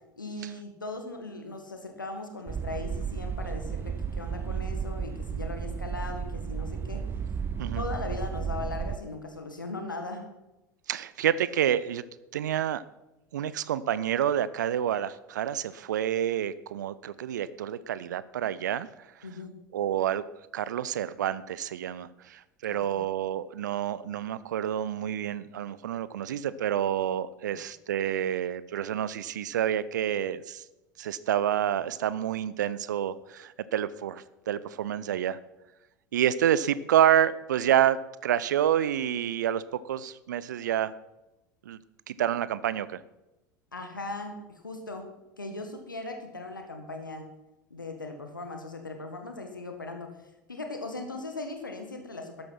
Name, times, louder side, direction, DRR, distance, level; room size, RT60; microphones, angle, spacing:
voice 1, 0.2-7.0 7.7-10.3 19.2-19.5 22.7-23.0 27.4-27.6 43.7-45.0 45.4-47.3 47.7-50.1 50.5-52.4, left 2 dB, 80° left, 5 dB, 1.8 m, -38 dB
sound 1, 2.5-9.0, right 7 dB, 20° right, 0.6 m, -33 dB
voice 2, 10.9-12.0 12.3-12.8 13.3-18.9 19.7-20.2 20.5-30.6 31.0-35.4 36.1-40.9 41.7-41.8 42.1-43.0, right 10 dB, 65° right, 17 dB, 0.7 m, -28 dB
13.0 x 10.5 x 5.9 m, 0.97 s
figure-of-eight pair, 75°, 10 cm